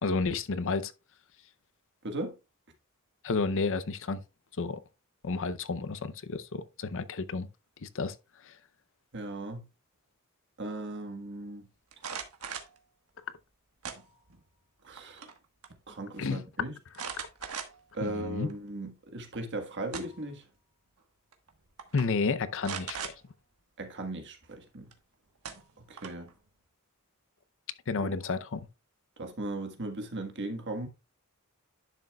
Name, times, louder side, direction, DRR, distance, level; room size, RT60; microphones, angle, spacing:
voice 1, 0.0-0.9 3.2-4.2 4.6-4.8 5.2-7.5 7.8-8.1 16.2-16.4 18.0-18.5 21.9-23.1 27.9-28.6, left 4 dB, 60° left, 0.6 m, -31 dB
voice 2, 2.0-2.3 9.1-9.6 10.6-11.7 14.8-15.3 15.9-16.7 17.9-20.4 23.8-24.9 25.9-26.3 29.2-30.9, right 2 dB, 55° right, 1.5 m, -37 dB
sound 1, 11.9-12.8 13.8-14.4 14.8-15.4 15.6-15.7 16.9-18.0 18.5-18.6 19.6-20.3 21.3-21.5 21.8-22.1 22.6-23.2 24.9-25.0 25.4-26.3, right 6 dB, 85° right, 1.3 m, -39 dB
11.0 x 6.4 x 2.3 m
head